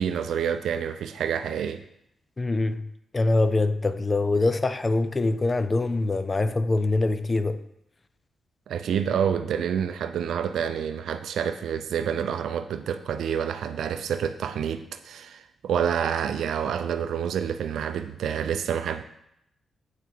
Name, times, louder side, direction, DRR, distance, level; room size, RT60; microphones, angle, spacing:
voice 1, 0.0-1.8 8.7-19.0, right 8 dB, 85° right, 0.5 m, -28 dB
voice 2, 2.4-2.8 3.1-7.6, left 2 dB, 20° left, 0.4 m, -24 dB
8.1 x 5.9 x 4.5 m
wide cardioid pair, 180°, 0 cm